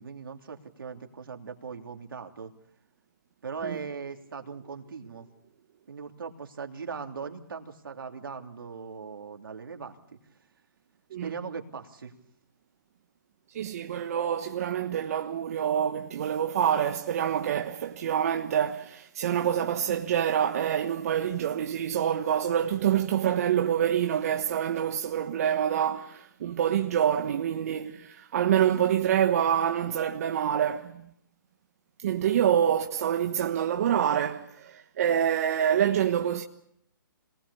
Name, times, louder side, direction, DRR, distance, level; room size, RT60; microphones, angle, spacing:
voice 1, 0.0-2.5 3.4-5.3 5.9-10.2 11.2-12.1, right 5 dB, 75° right, 3.1 m, -39 dB
voice 2, 13.5-31.0 32.0-36.4, right 9 dB, 45° right, 1.3 m, -26 dB
26.5 x 19.5 x 7.0 m
hypercardioid pair, 155°, 12 cm